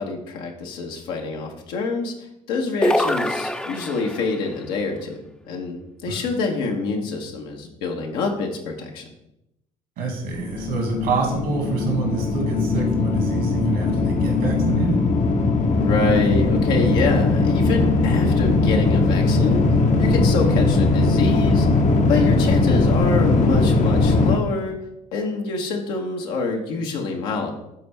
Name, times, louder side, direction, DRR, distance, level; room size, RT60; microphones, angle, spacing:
voice 1, 0.0-9.1 15.8-19.7 20.0-21.7 22.1-24.8 25.1-27.5, left 4 dB, 70° left, 1 dB, 1.3 m, -26 dB
sound 1, 2.8-4.4, left 1 dB, 5° left, 0.7 m, -23 dB
voice 2, 10.0-15.0, right 3 dB, 70° right, 1 dB, 2.3 m, -26 dB
sound 2, 10.3-24.4, left 3 dB, 45° left, 1.0 m, -19 dB
12.5 x 4.4 x 3.3 m, 0.84 s
hypercardioid pair, 55°, 17 cm